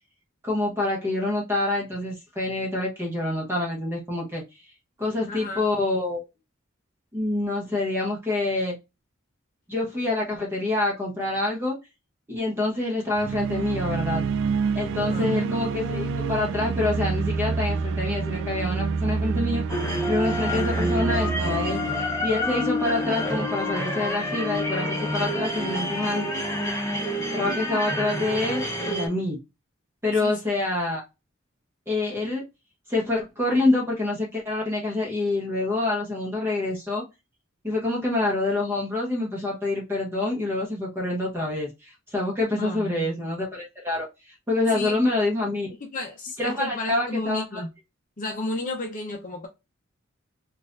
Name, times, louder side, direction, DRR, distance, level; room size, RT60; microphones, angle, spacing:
voice 1, 0.4-4.4 5.0-6.3 7.1-8.8 9.7-11.8 12.3-14.2 14.7-19.6 20.1-21.8 22.2-26.3 27.3-29.4 30.0-31.0 31.9-32.4 32.9-37.0 37.6-45.7 46.4-47.6, left 2 dB, 10° right, 1.0 m, -26 dB
voice 2, 5.3-5.7 15.0-15.3 30.2-30.4 42.5-43.1 44.7-45.2 45.8-47.7 48.2-49.5, left 2 dB, 40° left, 0.6 m, -33 dB
sound 1, 13.1-23.2, right 5 dB, 65° right, 0.3 m, -28 dB
sound 2, 19.7-29.1, left 1 dB, 15° left, 1.0 m, -28 dB
4.0 x 2.5 x 2.4 m
head